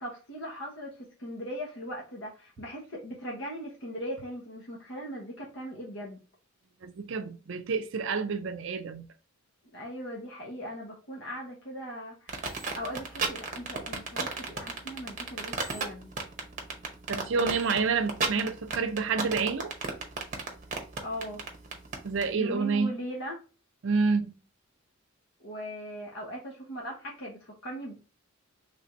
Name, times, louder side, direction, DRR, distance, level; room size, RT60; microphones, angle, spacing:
voice 1, 0.0-6.2 9.7-16.1 21.0-21.4 22.3-23.4 25.4-28.0, equal, 55° left, 0.9 m, -39 dB
voice 2, 6.8-9.0 17.1-19.7 22.0-22.9 23.8-24.3, right 4 dB, 60° right, 0.4 m, -28 dB
sound 1, 12.3-22.3, right 4 dB, 35° right, 0.8 m, -33 dB
3.3 x 2.6 x 4.3 m
head